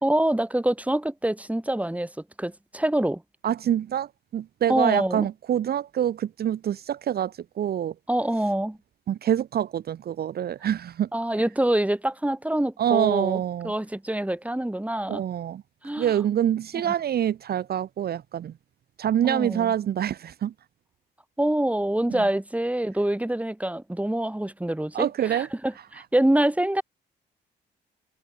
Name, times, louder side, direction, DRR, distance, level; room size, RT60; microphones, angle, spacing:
voice 1, 0.0-2.1 2.4-3.2 4.7-5.3 8.1-8.8 11.1-15.2 15.8-16.1 19.2-19.7 21.4-26.8, right 1 dB, 5° right, 4.3 m, -25 dB
voice 2, 3.4-7.9 9.1-11.1 12.8-13.7 15.1-15.6 16.0-18.5 19.0-20.5 22.1-22.2 24.9-25.5, right 10 dB, 60° right, 0.8 m, -26 dB
cardioid pair, 70°, 18 cm